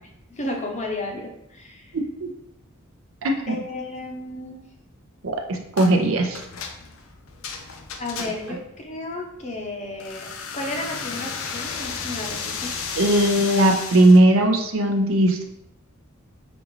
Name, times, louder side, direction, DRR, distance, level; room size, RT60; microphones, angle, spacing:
voice 1, 0.3-1.9 3.5-4.6 8.0-12.8, left 2 dB, 35° left, 1 dB, 0.7 m, -33 dB
voice 2, 1.9-2.3 3.2-3.6 5.2-6.4 12.9-15.4, right 1 dB, 70° right, 3 dB, 0.6 m, -18 dB
sound 1, 5.8-6.0 6.3-8.6 10.0-14.2, left 5 dB, 70° left, 0.5 m, -33 dB
5.0 x 2.4 x 3.1 m, 0.82 s
head